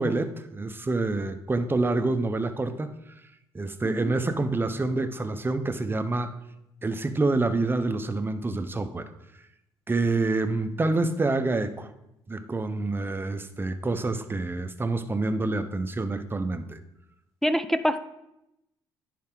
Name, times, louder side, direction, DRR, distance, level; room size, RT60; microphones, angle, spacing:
voice 1, 0.0-2.9 3.5-6.3 6.8-9.1 9.9-11.9 12.3-16.8, right 2 dB, 20° right, 10 dB, 0.8 m, -27 dB
voice 2, 17.4-18.0, equal, 5° left, 9 dB, 0.5 m, -25 dB
10.5 x 4.6 x 3.8 m, 0.86 s
supercardioid pair, 65°, 10 cm